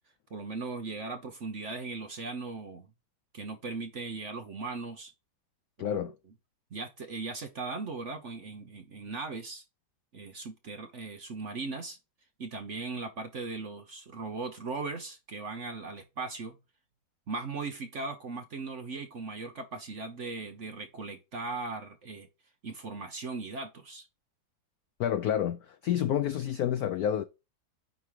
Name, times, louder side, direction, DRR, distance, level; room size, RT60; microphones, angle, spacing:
voice 1, 0.3-2.9 3.3-5.1 5.8-6.1 6.7-9.6 10.1-12.0 12.4-16.6 17.3-22.3 22.6-24.1, right 3 dB, 50° right, 1.0 m, -38 dB
voice 2, 5.8-6.1 25.0-27.2, left 10 dB, 75° left, 0.8 m, -29 dB
9.4 x 3.6 x 3.2 m
omnidirectional pair, 2.1 m